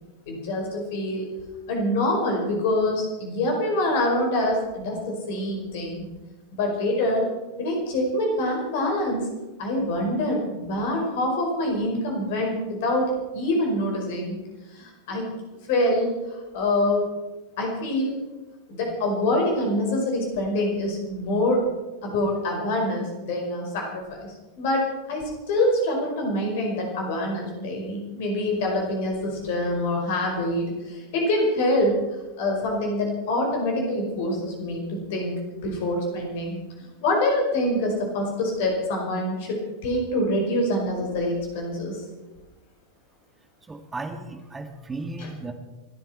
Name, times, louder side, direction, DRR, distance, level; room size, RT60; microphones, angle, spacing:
voice 1, 0.3-1.3 1.7-6.0 6.5-7.3 7.6-9.2 9.6-14.4 14.7-15.3 15.7-16.1 16.5-17.1 17.6-18.1 18.7-21.6 22.0-24.2 24.6-24.8 25.1-31.9 32.4-36.6 37.0-42.0, left 1 dB, 50° left, 1 dB, 5.1 m, -25 dB
voice 2, 43.7-45.5, right 2 dB, 15° right, 6 dB, 2.0 m, -35 dB
28.5 x 10.5 x 4.4 m, 1.2 s
figure-of-eight pair, 90°, 0 cm